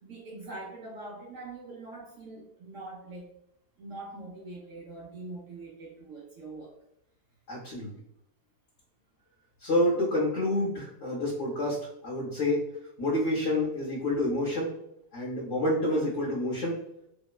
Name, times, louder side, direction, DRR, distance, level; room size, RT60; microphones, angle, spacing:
voice 1, 0.0-3.3 3.8-6.7, right 2 dB, 65° right, -4 dB, 0.8 m, -43 dB
voice 2, 7.5-7.9 9.6-12.6 13.0-14.7 15.1-16.8, left 1 dB, 60° left, -5 dB, 0.8 m, -28 dB
2.9 x 2.0 x 2.3 m, 0.78 s
omnidirectional pair, 1.7 m